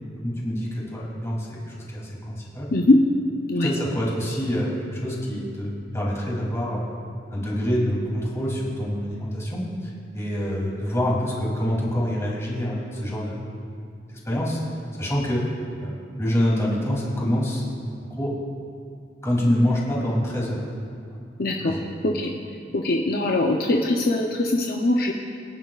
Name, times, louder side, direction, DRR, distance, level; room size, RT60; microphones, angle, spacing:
voice 1, 0.2-2.7 3.6-6.9 7.3-13.4 14.1-14.6 15.0-15.4 15.8-17.6 18.0-18.3 19.2-20.6 21.6-21.9, equal, 15° left, -4 dB, 3.0 m, -26 dB
voice 2, 2.7-3.0 3.5-3.7 21.4-21.8 22.0-22.3 22.7-25.1, left 2 dB, 55° left, 0 dB, 0.7 m, -21 dB
24.0 x 10.0 x 2.4 m, 2.4 s
head